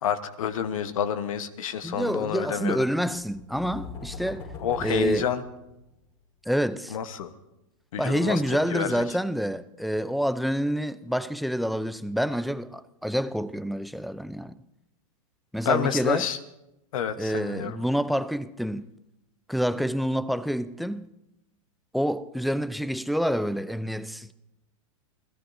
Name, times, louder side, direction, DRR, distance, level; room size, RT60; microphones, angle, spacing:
voice 1, 0.0-2.8 4.6-5.4 6.9-7.3 7.9-8.4 8.7-9.0 15.6-16.4 16.9-17.8, left 8 dB, 75° left, 1.2 m, -28 dB
voice 2, 1.8-4.5 4.8-5.3 6.5-7.0 8.0-14.6 15.5-16.3 17.2-18.9 19.5-21.1 21.9-24.3, equal, ahead, 0.5 m, -27 dB
sound 1, 3.1-6.1, left 4 dB, 55° left, 7.4 m, -41 dB
28.0 x 17.0 x 2.7 m
hypercardioid pair, 115°, 17 cm